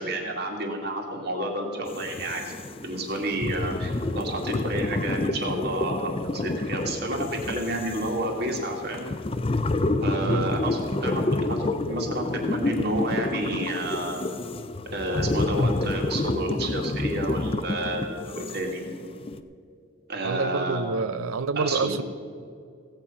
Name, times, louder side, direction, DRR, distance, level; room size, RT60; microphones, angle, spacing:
voice 1, 0.0-2.5 2.8-9.1 10.0-14.3 14.9-18.8 20.1-21.0 21.6-22.0, right 1 dB, 50° right, 2.2 m, -30 dB
sound 1, 1.9-19.4, left 2 dB, 25° left, 0.4 m, -29 dB
voice 2, 20.2-22.0, right 4 dB, 80° right, 0.5 m, -27 dB
16.5 x 8.8 x 5.6 m
head